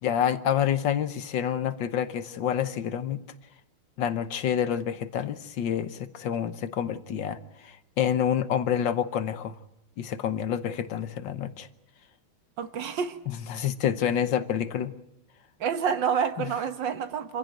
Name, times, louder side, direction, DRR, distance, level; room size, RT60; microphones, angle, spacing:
voice 1, 0.0-3.2 4.0-9.5 10.0-11.7 13.3-14.9 16.4-16.5, left 9 dB, 65° left, 12 dB, 1.6 m, -28 dB
voice 2, 12.6-13.2 15.6-17.4, right 7 dB, 65° right, 10 dB, 1.8 m, -28 dB
26.5 x 15.5 x 9.1 m, 0.85 s
omnidirectional pair, 2.2 m